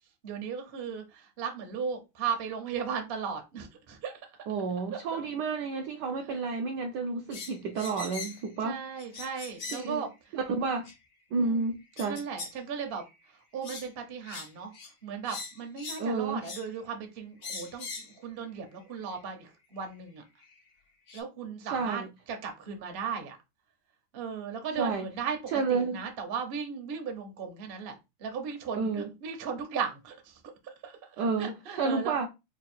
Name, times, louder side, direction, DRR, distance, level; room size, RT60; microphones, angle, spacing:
voice 1, 0.2-4.1 4.9-5.0 6.3-6.4 8.6-10.1 11.4-11.7 12.1-13.0 13.5-14.7 15.0-20.2 21.1-22.0 22.3-23.4 24.1-25.4 25.7-32.1, right 6 dB, 55° right, 0.6 m, -36 dB
voice 2, 4.5-8.8 9.7-10.1 10.3-10.9 11.3-12.2 16.0-16.4 21.6-22.1 24.8-25.1 25.5-26.0 28.7-29.1 31.2-32.3, right 4 dB, 75° right, 0.9 m, -30 dB
sound 1, 7.3-8.5 9.0-9.9 10.9-11.0 12.0-12.6 12.9-13.1 13.6-13.9 14.2-14.5 14.7-14.9 15.2-16.1 16.4-16.7 17.4-18.1 19.1-19.2 20.4-20.5 21.1-21.2, left 4 dB, 50° left, 0.9 m, -41 dB
3.6 x 2.4 x 4.3 m
omnidirectional pair, 2.3 m